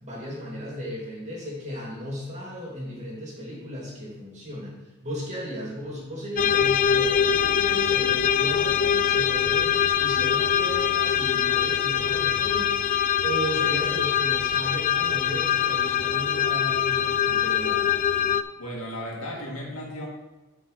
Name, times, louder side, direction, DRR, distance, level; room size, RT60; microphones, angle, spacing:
voice 1, 0.0-4.7 5.0-12.9 13.2-17.9, equal, 30° right, -4 dB, 2.6 m, -35 dB
sound 1, 6.4-18.4, left 8 dB, 35° left, 0.3 m, -23 dB
voice 2, 18.6-20.1, equal, 85° left, -2 dB, 2.2 m, -35 dB
6.3 x 4.9 x 6.4 m, 1.1 s
head